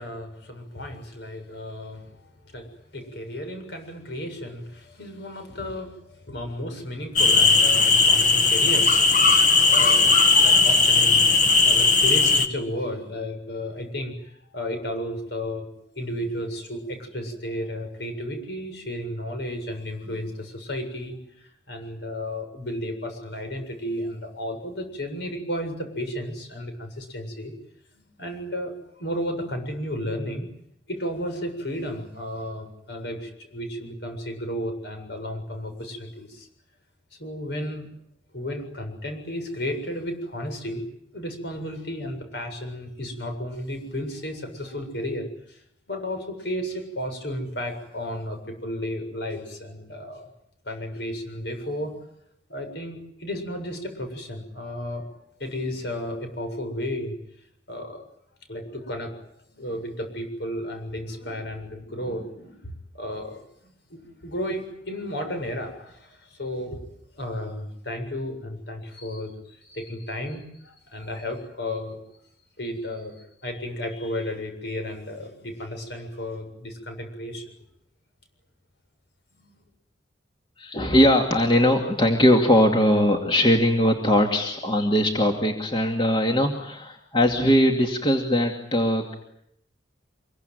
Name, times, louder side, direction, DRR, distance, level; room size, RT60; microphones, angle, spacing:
voice 1, 0.0-10.1 10.4-11.3 11.6-15.7 16.0-27.5 27.9-30.5 30.9-36.5 37.2-37.8 38.3-40.8 41.1-50.3 50.6-52.0 52.5-55.1 55.4-57.2 57.7-58.1 58.5-66.8 67.1-72.0 72.6-77.5 79.4-79.6, left 1 dB, 60° left, 6 dB, 7.3 m, -33 dB
sound 1, 7.2-12.5, left 4 dB, 40° left, 2.0 m, -17 dB
voice 2, 80.6-89.1, equal, 25° left, 2 dB, 2.5 m, -20 dB
26.0 x 23.0 x 9.4 m, 0.74 s
head